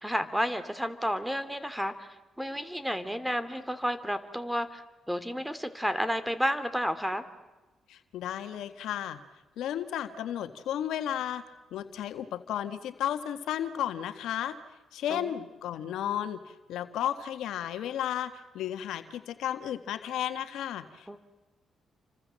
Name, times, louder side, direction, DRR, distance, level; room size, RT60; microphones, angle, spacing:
voice 1, 0.0-7.2 15.1-15.3 21.1-21.2, equal, 5° right, 12 dB, 2.9 m, -31 dB
voice 2, 7.9-9.2 9.6-11.4 11.7-14.6 14.9-16.4 16.7-21.2, left 10 dB, 85° left, 9 dB, 1.7 m, -33 dB
29.0 x 25.5 x 7.6 m, 1.2 s
cardioid pair, 75°, 0 cm